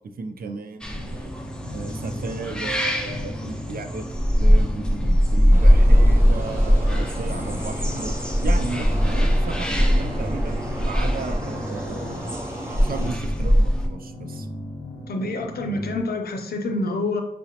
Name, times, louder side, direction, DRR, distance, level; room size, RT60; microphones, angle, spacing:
voice 1, 0.2-1.3 1.7-4.1 4.4-8.2 8.4-12.3 12.8-14.5, right 4 dB, 70° right, 8 dB, 0.4 m, -34 dB
sound 1, 0.8-13.9, equal, 5° left, 0.5 m, -21 dB
sound 2, 0.9-16.0, left 1 dB, 25° left, 1.1 m, -37 dB
sound 3, 5.5-13.1, right 1 dB, 15° right, 0.9 m, -35 dB
voice 2, 15.1-17.2, left 2 dB, 80° left, 4 dB, 0.5 m, -27 dB
4.7 x 2.0 x 2.9 m, 0.88 s
cardioid pair, 55°, 16 cm